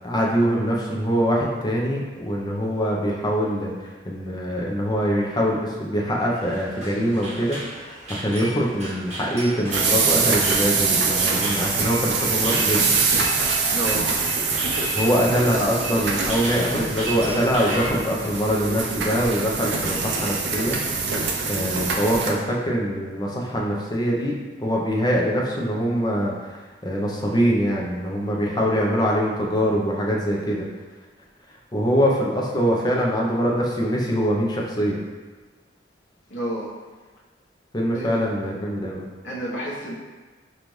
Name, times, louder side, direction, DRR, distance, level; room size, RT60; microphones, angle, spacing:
voice 1, 0.0-13.0 14.9-20.8 21.0-30.7 31.7-35.0 37.7-39.0, equal, 20° left, -2 dB, 0.6 m, -23 dB
sound 1, 6.3-17.9, right 1 dB, 35° right, 1.0 m, -34 dB
sound 2, 9.7-22.3, right 4 dB, 70° right, 0.5 m, -24 dB
voice 2, 13.7-14.1 36.3-36.7 37.9-38.1 39.2-39.9, equal, 70° left, -7 dB, 0.9 m, -29 dB
5.2 x 2.5 x 3.1 m, 1.3 s
head